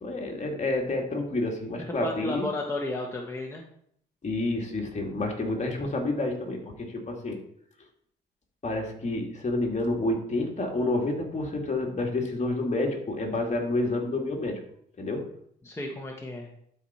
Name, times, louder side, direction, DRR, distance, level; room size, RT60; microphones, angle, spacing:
voice 1, 0.0-2.5 4.2-7.4 8.6-14.6 15.0-15.3, left 2 dB, 35° left, 1 dB, 2.3 m, -29 dB
voice 2, 1.9-3.7 15.6-16.5, left 1 dB, 15° left, -1 dB, 1.4 m, -33 dB
12.0 x 4.8 x 4.3 m, 0.68 s
cardioid pair, 90°, 20 cm